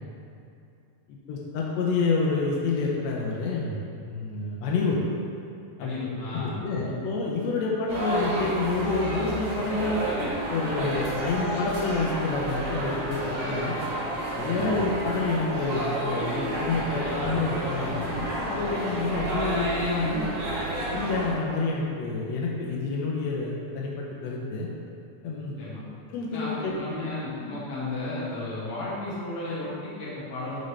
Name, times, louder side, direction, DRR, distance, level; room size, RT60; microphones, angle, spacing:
voice 1, 1.1-5.0 5.8-6.0 6.3-10.0 10.5-13.8 14.4-20.3 20.9-24.7 25.2-25.6 26.1-27.0, left 3 dB, 90° left, -3 dB, 1.5 m, -28 dB
voice 2, 5.8-6.6 14.4-14.8 25.6-25.8 26.3-30.6, left 2 dB, 50° left, -9 dB, 2.4 m, -34 dB
sound 1, 7.9-21.3, right 1 dB, 55° right, 1.8 m, -30 dB
11.5 x 4.1 x 3.3 m, 2.5 s
omnidirectional pair, 4.2 m